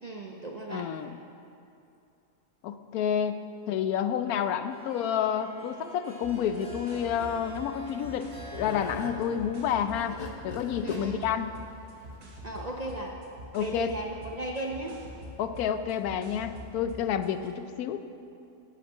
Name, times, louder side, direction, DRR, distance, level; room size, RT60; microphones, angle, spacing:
voice 1, 0.0-0.9 10.8-11.2 12.4-13.2 13.6-15.0 17.2-17.5, right 1 dB, 45° right, 0 dB, 0.5 m, -36 dB
voice 2, 0.7-1.2 2.6-11.5 13.5-13.9 15.4-18.0, left 8 dB, 90° left, 10 dB, 1.1 m, -30 dB
Harp, 4.7-10.5, right 1 dB, 10° right, 2.1 m, -46 dB
sound 1, 6.2-17.3, equal, 75° right, 1.7 m, -46 dB
sound 2, 7.9-13.1, left 5 dB, 45° left, 0.9 m, -41 dB
9.1 x 8.4 x 5.5 m, 2.7 s
omnidirectional pair, 1.5 m